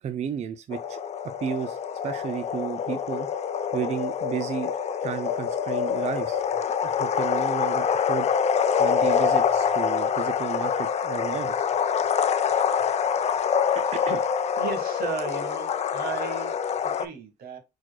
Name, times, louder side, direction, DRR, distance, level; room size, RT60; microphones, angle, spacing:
voice 1, 0.0-1.8 2.0-3.3 3.7-4.7 5.0-6.4 6.8-8.3 8.8-11.6 13.7-14.2, right 8 dB, 40° right, 0.5 m, -33 dB
sound 1, 0.7-17.1, left 7 dB, 40° left, 0.5 m, -25 dB
voice 2, 13.1-13.6 13.9-14.2 14.6-17.6, right 5 dB, 65° right, 1.6 m, -36 dB
4.5 x 4.3 x 2.3 m
cardioid pair, 110°, 17 cm